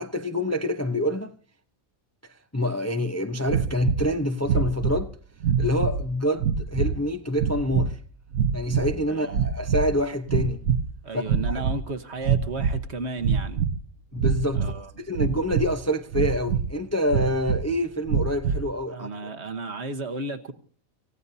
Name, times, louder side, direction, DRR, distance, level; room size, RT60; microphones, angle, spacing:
voice 1, 0.0-1.4 2.5-5.1 5.6-8.0 8.5-10.6 11.1-11.6 14.1-19.3, left 1 dB, 15° left, 0.7 m, -27 dB
sound 1, 3.5-4.1 4.4-5.1 5.4-6.0 6.4-7.0 7.4-7.9 8.3-9.0 9.3-9.9 10.2-10.9 11.2-11.8 12.2-12.8 13.2-13.8 14.2-14.7 15.2-15.8 16.1-16.7 17.1-17.6 18.1-18.6, right 6 dB, 75° right, 1.4 m, -25 dB
voice 2, 9.1-9.5 11.0-13.6 14.5-14.9 18.9-20.5, right 3 dB, 55° right, 1.4 m, -33 dB
27.5 x 15.5 x 2.7 m
omnidirectional pair, 1.5 m